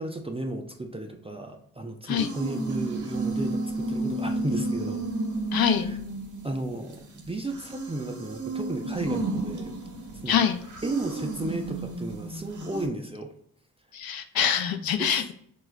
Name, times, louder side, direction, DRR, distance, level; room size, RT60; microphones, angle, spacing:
voice 1, 0.0-5.0 5.8-6.0 6.4-9.8 10.2-10.4 10.8-13.3 15.0-15.2, right 2 dB, 15° right, 3 dB, 0.4 m, -34 dB
sound 1, 2.2-7.3 7.6-12.9, right 2 dB, 45° right, 0.9 m, -32 dB
voice 2, 5.5-5.9 10.3-10.6 13.9-15.3, left 8 dB, 55° left, 8 dB, 0.5 m, -24 dB
3.8 x 2.3 x 3.1 m, 0.64 s
supercardioid pair, 40°, 43 cm